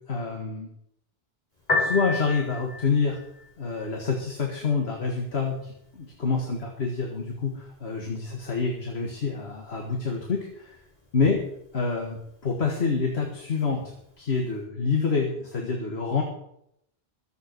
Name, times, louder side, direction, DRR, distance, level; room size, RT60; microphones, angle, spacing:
voice 1, 0.1-0.7 1.8-3.2 3.6-10.8 11.1-11.4 11.7-13.8 14.2-16.2, left 4 dB, 75° left, 1 dB, 2.0 m, -27 dB
Piano, 1.6-14.6, left 2 dB, 45° left, 4.6 m, -37 dB
22.0 x 8.1 x 4.6 m, 0.74 s
omnidirectional pair, 1.1 m